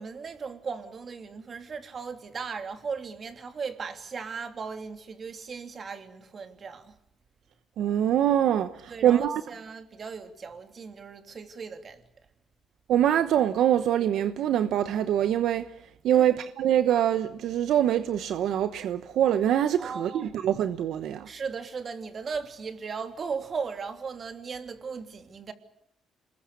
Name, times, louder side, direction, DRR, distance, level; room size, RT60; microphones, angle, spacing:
voice 1, 0.0-7.0 8.9-12.0 16.1-16.3 19.8-20.4 21.2-25.5, right 5 dB, 45° right, 3.0 m, -37 dB
voice 2, 7.8-9.4 12.9-15.7 16.0-21.3, right 10 dB, 75° right, 1.0 m, -24 dB
27.5 x 21.0 x 8.5 m
cardioid pair, 90°, 0 cm